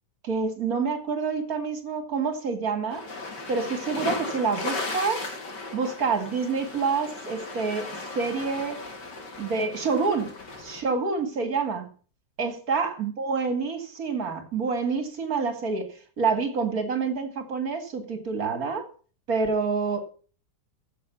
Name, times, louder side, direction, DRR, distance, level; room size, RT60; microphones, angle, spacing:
voice 1, 0.2-3.0 3.5-5.3 5.7-8.8 9.4-10.3 10.6-11.9 12.4-18.9 19.3-20.0, right 4 dB, 55° right, 7 dB, 2.7 m, -27 dB
sound 1, 2.9-10.8, left 3 dB, 85° left, 3.3 m, -36 dB
15.0 x 6.6 x 7.0 m, 0.41 s
omnidirectional pair, 1.8 m